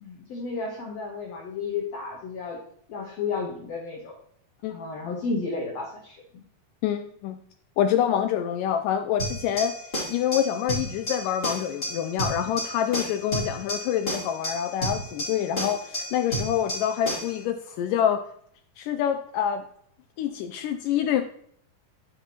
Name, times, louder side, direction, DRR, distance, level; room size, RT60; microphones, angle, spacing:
voice 1, 0.0-2.6 2.9-4.2 4.7-6.4, left 4 dB, 65° left, 0 dB, 1.8 m, -32 dB
voice 2, 6.8-7.4 7.8-9.8 10.1-18.2 18.8-19.6 20.2-21.2, left 9 dB, 80° left, 7 dB, 1.9 m, -26 dB
sound 1, 9.2-17.4, equal, 20° left, 2.0 m, -32 dB
11.5 x 5.8 x 2.9 m, 0.66 s
omnidirectional pair, 4.1 m